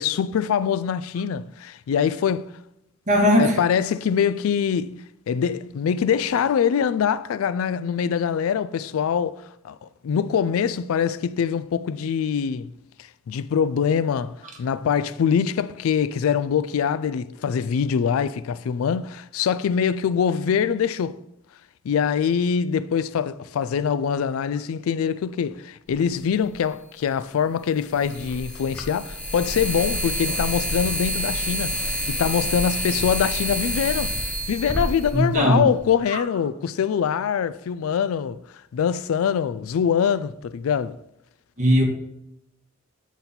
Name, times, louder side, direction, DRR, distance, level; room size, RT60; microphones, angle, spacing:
voice 1, 0.0-2.5 3.4-12.7 13.3-21.2 21.8-34.1 34.5-38.4 38.7-41.0, left 7 dB, 80° left, 0.3 m, -24 dB
voice 2, 3.1-3.6 35.1-35.6 36.1-36.2 41.6-41.8, equal, 35° right, 1.4 m, -18 dB
sound 1, 26.5-26.6 27.9-35.9, equal, 5° left, 0.9 m, -28 dB
8.0 x 4.1 x 4.2 m
head